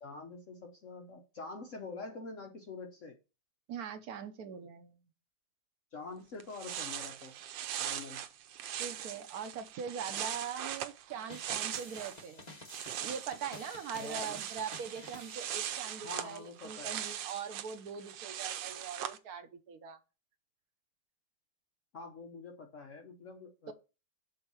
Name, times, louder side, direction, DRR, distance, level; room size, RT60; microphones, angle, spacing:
voice 1, 0.0-3.2 5.9-7.3 7.8-8.2 14.0-14.4 16.0-17.0 21.9-23.7, left 3 dB, 55° left, 1.0 m, -46 dB
voice 2, 3.7-5.1 8.8-12.5 13.0-20.0 23.7-23.8, right 7 dB, 65° right, 1.2 m, -42 dB
sound 1, 6.1-6.2 6.4-12.2 12.5-19.2, right 10 dB, 85° right, 1.4 m, -40 dB
sound 2, 11.3-16.2, left 2 dB, 25° left, 1.5 m, -52 dB
6.4 x 4.1 x 6.0 m
omnidirectional pair, 2.0 m